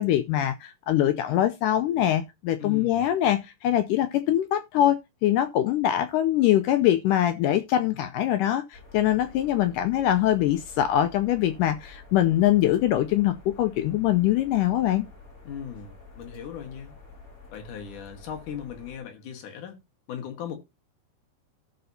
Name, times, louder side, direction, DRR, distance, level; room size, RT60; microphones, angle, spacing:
voice 1, 0.0-15.1, left 12 dB, 85° left, 1.9 m, -23 dB
voice 2, 2.6-3.1 15.4-17.0 17.5-19.8 20.1-20.6, left 8 dB, 60° left, 2.7 m, -38 dB
sound 1, 8.7-19.0, left 3 dB, 30° left, 2.1 m, -49 dB
16.5 x 6.7 x 2.7 m
omnidirectional pair, 4.4 m